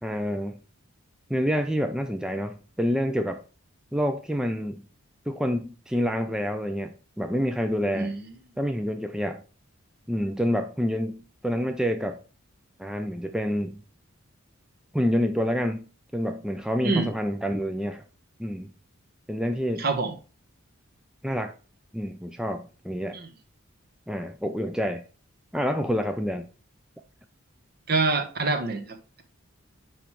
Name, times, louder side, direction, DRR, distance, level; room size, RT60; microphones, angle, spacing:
voice 1, 0.0-0.6 1.3-3.4 3.9-4.8 5.3-8.1 8.6-9.4 10.1-12.2 12.8-13.8 14.9-18.0 18.4-18.7 19.3-19.9 21.2-21.5 21.9-23.2 24.1-25.0 25.5-26.5, equal, 5° right, 0.4 m, -28 dB
voice 2, 7.9-8.2 16.8-17.1 19.8-20.1 23.1-23.3 27.9-29.2, right 3 dB, 45° right, 1.1 m, -26 dB
9.3 x 3.2 x 4.6 m
head